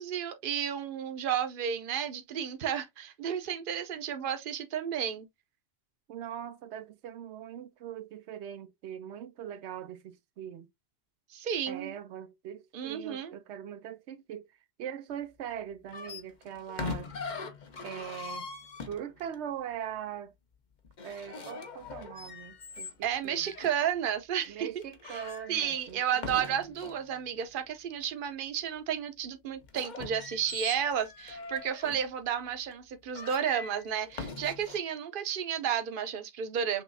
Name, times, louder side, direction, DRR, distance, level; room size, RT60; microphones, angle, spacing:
voice 1, 0.0-5.3 11.3-11.9 12.7-13.3 23.0-24.7 25.1-25.2 25.5-36.8, right 8 dB, 55° right, 0.9 m, -32 dB
voice 2, 6.1-10.7 11.7-14.5 14.8-17.1 17.8-18.5 18.8-20.3 21.0-22.9 23.2-23.5 24.5-26.0 26.3-26.7, right 9 dB, 90° right, 0.9 m, -41 dB
sound 1, 15.9-19.4 20.8-23.7 24.4-24.5 24.8-27.1 29.6-32.1 32.7-32.8 33.1-34.8, left 4 dB, 45° left, 0.9 m, -42 dB
6.2 x 3.0 x 2.6 m
omnidirectional pair, 1.1 m